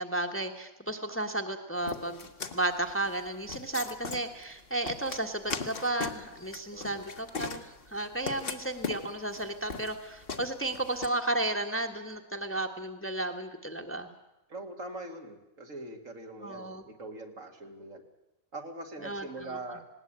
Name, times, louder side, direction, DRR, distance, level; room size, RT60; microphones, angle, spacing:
voice 1, 0.0-2.3 2.5-14.1 16.4-16.8 19.0-19.6, right 2 dB, 10° left, 4 dB, 1.4 m, -33 dB
sound 1, 1.9-11.1, left 4 dB, 45° left, 1.5 m, -39 dB
voice 2, 6.7-7.1 14.5-18.0 18.5-19.8, right 2 dB, 65° right, 3 dB, 2.7 m, -42 dB
19.5 x 18.0 x 8.8 m, 0.96 s
omnidirectional pair, 1.4 m